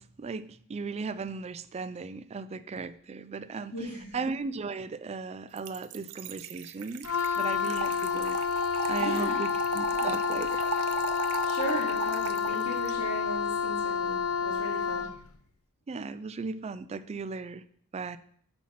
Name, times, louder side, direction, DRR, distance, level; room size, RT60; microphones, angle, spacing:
voice 1, 0.0-3.7 4.1-7.1 7.4-8.4 8.9-10.6 15.9-17.6 17.9-18.2, right 4 dB, 30° right, 14 dB, 0.3 m, -36 dB
voice 2, 3.7-4.2 9.0-9.4 10.0-10.1 11.4-15.1, right 1 dB, 90° left, -2 dB, 2.3 m, -37 dB
Trickle dribble / Fill (with liquid), 5.6-12.9, right 5 dB, 80° right, 0.6 m, -37 dB
Wind instrument woodwind instrument, 7.0-15.2, left 6 dB, 70° left, 0.6 m, -29 dB
8.4 x 4.4 x 5.8 m, 0.62 s
head